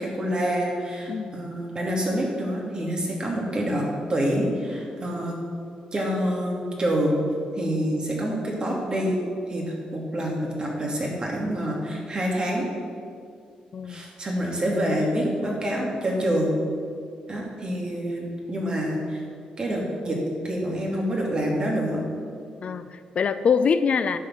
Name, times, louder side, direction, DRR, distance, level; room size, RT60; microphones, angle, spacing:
voice 1, 0.0-5.4 5.9-7.2 7.6-9.2 9.5-12.6 13.9-16.5 17.3-19.2 19.6-20.2 20.4-22.0, equal, 35° right, -2 dB, 2.7 m, -27 dB
voice 2, 1.1-1.5 13.7-14.0 22.6-24.2, left 6 dB, 55° left, 12 dB, 0.4 m, -24 dB
11.0 x 5.2 x 7.7 m, 2.2 s
cardioid pair, 95°, 3 cm